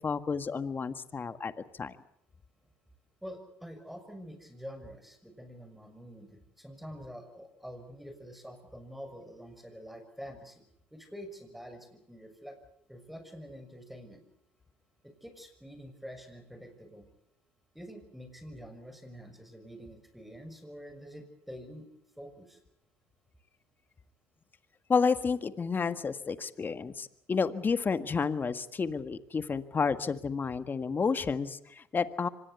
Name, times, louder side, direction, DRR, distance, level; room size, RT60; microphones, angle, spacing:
voice 1, 0.0-2.0 24.9-32.3, left 5 dB, 30° left, 11 dB, 1.7 m, -31 dB
voice 2, 3.2-10.6 10.9-12.6 12.9-14.2 15.0-17.1 17.7-21.9 22.2-22.6, equal, ahead, 9 dB, 6.2 m, -46 dB
25.0 x 19.5 x 8.2 m, 0.75 s
supercardioid pair, 80°, 6 cm